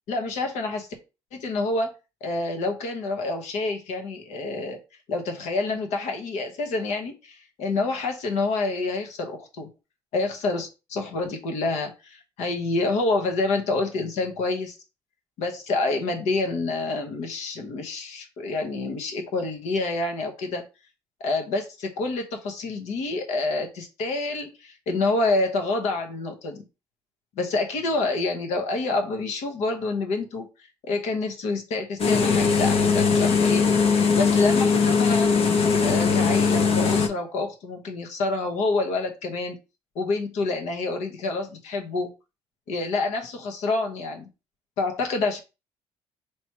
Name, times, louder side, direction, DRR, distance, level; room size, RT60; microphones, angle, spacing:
voice 1, 0.1-0.9 1.3-1.9 2.2-4.8 5.1-9.7 10.1-14.7 15.4-20.6 21.2-26.6 27.4-30.5 30.8-35.3 35.8-39.6 39.9-42.1 42.7-44.3 44.8-45.4, left 3 dB, 85° left, 4 dB, 1.1 m, -27 dB
sound 1, 32.0-37.1, left 5 dB, 60° left, 0.8 m, -20 dB
3.1 x 2.9 x 4.6 m, 0.29 s
cardioid pair, 95°, 12 cm